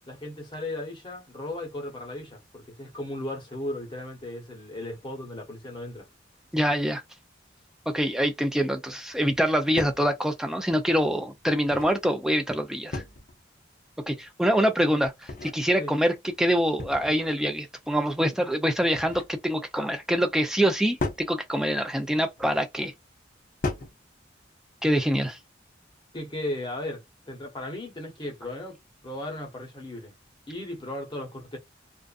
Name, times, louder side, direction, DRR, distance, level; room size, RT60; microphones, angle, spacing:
voice 1, 0.1-6.1 15.8-15.9 26.1-28.8 29.0-30.1 30.5-31.6, left 1 dB, 25° left, 0.9 m, -36 dB
voice 2, 6.5-7.0 7.9-13.0 14.1-22.9 24.8-25.4, equal, 5° right, 0.4 m, -25 dB
sound 1, 9.3-9.4 9.8-10.1 11.4-12.0 12.9-13.4 15.0-15.6 16.8-17.3 18.7-19.4 21.0-21.3 22.4-22.7 23.6-24.0, left 2 dB, 45° left, 0.5 m, -34 dB
2.5 x 2.4 x 2.4 m
head